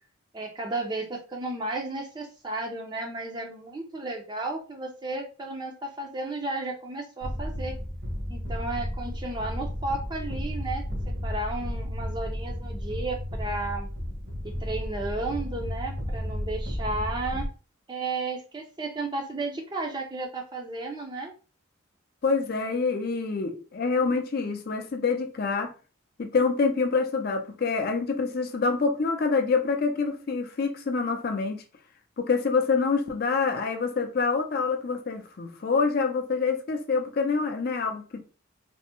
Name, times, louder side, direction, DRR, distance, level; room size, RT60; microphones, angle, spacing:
voice 1, 0.3-7.8 8.3-13.9 14.4-17.5 17.9-21.3, right 2 dB, 20° right, 0.5 m, -33 dB
sound 1, 7.2-17.5, equal, 60° right, 1.1 m, -33 dB
voice 2, 22.2-25.7 26.2-31.6 32.2-38.2, left 4 dB, 45° left, 0.4 m, -26 dB
3.3 x 2.0 x 2.9 m
head